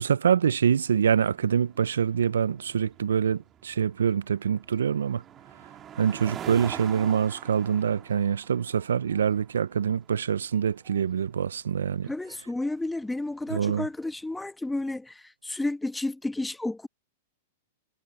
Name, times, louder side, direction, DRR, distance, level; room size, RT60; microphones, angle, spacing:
voice 1, 0.0-5.2 5.6-12.1 13.5-13.9, right 7 dB, 85° right, 0.3 m, -25 dB
sound 1, 0.7-14.2, right 10 dB, 30° right, 2.2 m, -46 dB
voice 2, 12.1-16.9, left 2 dB, 5° left, 1.4 m, -31 dB
hypercardioid pair, 115°, 0 cm